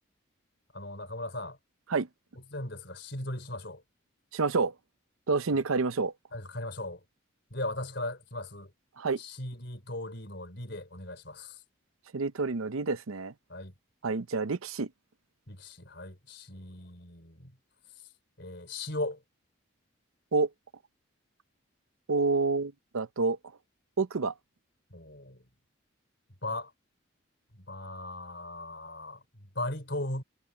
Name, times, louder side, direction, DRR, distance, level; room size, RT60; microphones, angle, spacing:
voice 1, 0.7-1.6 2.5-3.8 5.5-5.6 6.3-7.0 7.5-8.7 9.2-11.6 13.5-13.7 15.5-17.6 18.4-19.2 24.9-25.4 26.4-26.7 27.5-30.2, left 2 dB, 55° left, 4.8 m, -38 dB
voice 2, 4.3-4.7 5.3-6.1 9.0-9.2 12.1-13.3 14.0-14.9 20.3-20.5 22.1-23.4 24.0-24.3, right 4 dB, 90° right, 0.7 m, -28 dB
head